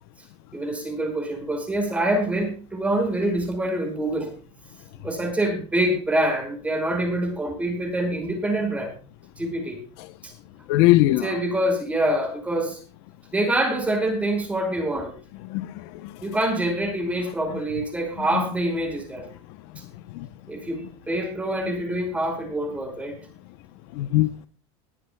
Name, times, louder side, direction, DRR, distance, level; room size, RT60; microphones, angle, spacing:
voice 1, 0.5-4.3 5.0-8.9 9.4-9.8 10.2-10.3 11.2-12.8 13.3-15.1 16.2-19.3 20.5-23.2, right 1 dB, 10° right, 5.3 m, -25 dB
voice 2, 10.7-11.3 15.5-16.1 20.1-20.3 24.0-24.3, left 17 dB, 65° left, 0.8 m, -20 dB
21.0 x 14.5 x 2.2 m
cardioid pair, 160°, 14 cm